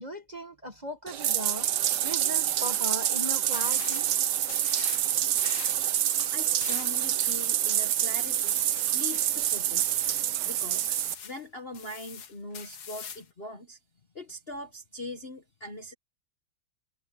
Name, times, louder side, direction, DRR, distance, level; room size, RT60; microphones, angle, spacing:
voice 1, 0.0-1.7 2.0-4.1, equal, 20° right, 1.5 m, -38 dB
Bathtub (filling or washing), 1.1-11.1, right 11 dB, 65° right, 1.2 m, -27 dB
sound 1, 3.5-4.1 4.4-5.1 5.4-10.2 10.7-11.4 11.7-13.3, left 7 dB, 90° left, 2.7 m, -43 dB
voice 2, 6.3-8.6 8.9-10.0 10.4-10.9 11.2-13.8 14.1-15.9, left 1 dB, 35° left, 1.2 m, -41 dB
omnidirectional pair, 2.4 m